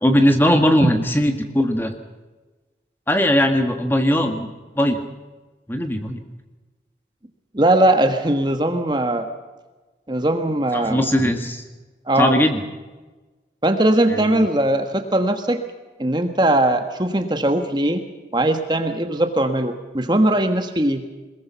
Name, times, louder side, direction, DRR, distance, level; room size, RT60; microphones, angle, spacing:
voice 1, 0.0-1.9 3.1-4.5 4.8-5.0 5.7-6.2 10.7-11.6 12.2-12.6 14.1-14.5, equal, 10° left, 5 dB, 1.7 m, -19 dB
voice 2, 7.5-9.3 10.1-11.1 12.1-12.3 13.6-15.6 16.0-18.0 18.3-21.0, right 1 dB, 25° right, 7 dB, 1.4 m, -20 dB
22.5 x 21.0 x 5.7 m, 1.2 s
head